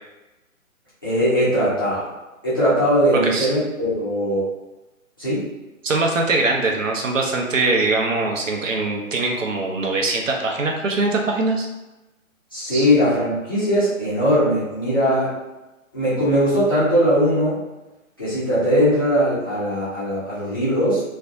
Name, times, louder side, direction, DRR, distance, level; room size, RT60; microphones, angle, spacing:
voice 1, 1.0-2.1 2.4-4.4 5.2-5.4 12.5-15.3 15.9-17.6 18.2-21.0, equal, 15° left, -13 dB, 0.5 m, -20 dB
voice 2, 5.8-11.7 12.7-12.9, right 3 dB, 65° right, 1 dB, 0.6 m, -22 dB
2.5 x 2.2 x 2.5 m, 1.0 s
figure-of-eight pair, 135°, 42 cm